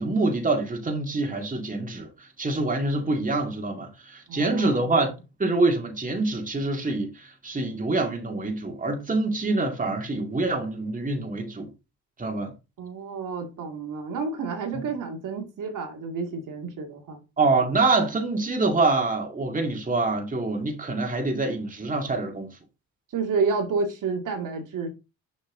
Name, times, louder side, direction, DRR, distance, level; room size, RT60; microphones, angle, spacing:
voice 1, 0.0-11.7 12.2-12.5 14.7-14.8 17.4-22.5, right 3 dB, 20° right, 2.2 m, -26 dB
voice 2, 4.3-5.0 12.8-17.2 23.1-24.9, right 4 dB, 60° right, 2.2 m, -30 dB
6.8 x 5.3 x 3.8 m
supercardioid pair, 65°, 36 cm